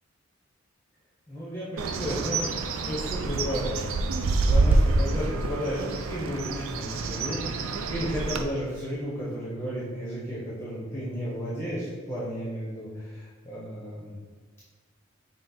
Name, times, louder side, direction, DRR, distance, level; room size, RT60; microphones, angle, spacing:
voice 1, 1.3-14.2, equal, 10° left, -8 dB, 0.7 m, -33 dB
Bird, 1.8-8.4, right 3 dB, 75° right, 0.3 m, -27 dB
5.6 x 2.0 x 4.1 m, 1.5 s
head